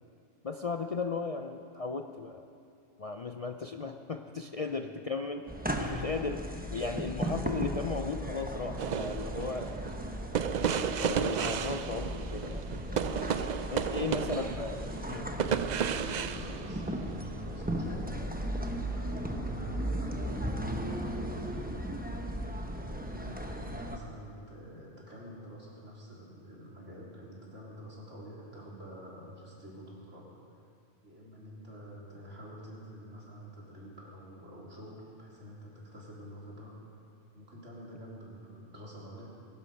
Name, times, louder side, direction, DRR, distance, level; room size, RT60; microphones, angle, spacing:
voice 1, 0.4-2.4 3.0-5.5 5.8-6.4 6.7-9.9 11.0-13.2 13.7-14.8 15.1-15.3, left 4 dB, 45° left, 5 dB, 0.5 m, -36 dB
sound 1, 5.5-24.0, equal, 10° right, 0.9 m, -36 dB
voice 2, 8.7-9.2 13.7-14.7 15.9-18.3 18.6-21.7 22.1-30.3 30.5-30.6 31.0-37.0 37.3-39.3, equal, 75° right, -5 dB, 3.7 m, -48 dB
sound 2, 8.8-17.2 18.0-18.1, right 8 dB, 60° right, 0.4 m, -33 dB
22.0 x 11.5 x 5.3 m, 2.4 s
omnidirectional pair, 1.3 m